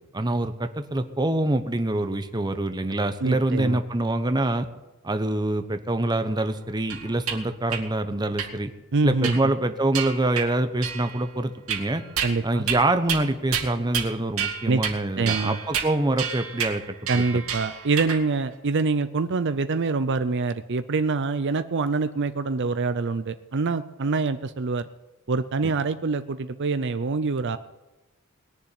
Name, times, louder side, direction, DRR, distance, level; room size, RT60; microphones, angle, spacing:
voice 1, 0.1-4.7 5.0-8.7 9.0-12.0 12.4-17.2 25.6-25.7, right 2 dB, 20° right, 8 dB, 1.0 m, -25 dB
voice 2, 3.2-3.8 8.9-9.4 12.2-12.7 14.7-14.8 15.2-15.6 17.1-24.9 25.3-27.6, right 4 dB, 55° right, 11 dB, 0.6 m, -25 dB
sound 1, 6.9-7.4 7.7-7.8 8.4-8.5 9.2-9.6 9.9-10.5 10.8-11.2 11.7-12.4 12.7-12.8 13.1-13.2 13.5-14.1 14.4-15.0 15.3-18.2, right 7 dB, 80° right, 2.0 m, -29 dB
20.5 x 7.1 x 9.8 m, 1.1 s
head